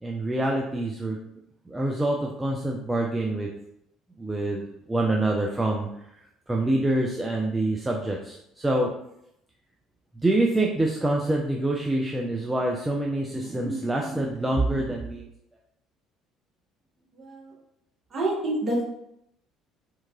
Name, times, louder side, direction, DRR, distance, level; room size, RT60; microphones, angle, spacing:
voice 1, 0.0-1.2 1.7-3.5 4.2-5.9 6.5-8.9 10.2-15.2, right 1 dB, 10° right, -1 dB, 0.3 m, -26 dB
voice 2, 17.1-17.5 18.1-18.8, right 1 dB, 35° right, -4 dB, 1.0 m, -27 dB
2.8 x 2.3 x 2.4 m, 0.78 s
figure-of-eight pair, 55°, 0 cm